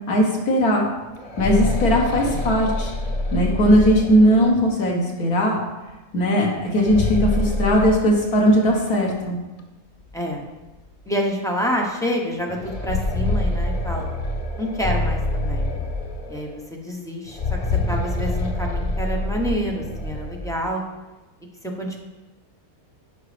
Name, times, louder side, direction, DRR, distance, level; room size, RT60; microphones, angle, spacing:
voice 1, 0.1-0.9 1.4-2.9 3.3-5.6 6.1-9.4, equal, 80° left, -1 dB, 1.9 m, -18 dB
sound 1, 1.0-4.8 6.6-8.8 9.1-9.2 10.1-10.2 10.7-10.8 12.4-16.6 17.3-20.7, left 2 dB, 55° left, 0.4 m, -26 dB
voice 2, 2.2-2.5 10.1-10.5 11.0-14.1 14.6-15.9 16.3-17.6 17.9-20.8 21.8-22.0, equal, 5° left, -1 dB, 0.7 m, -27 dB
10.5 x 5.2 x 3.3 m, 1.1 s
omnidirectional pair, 1.6 m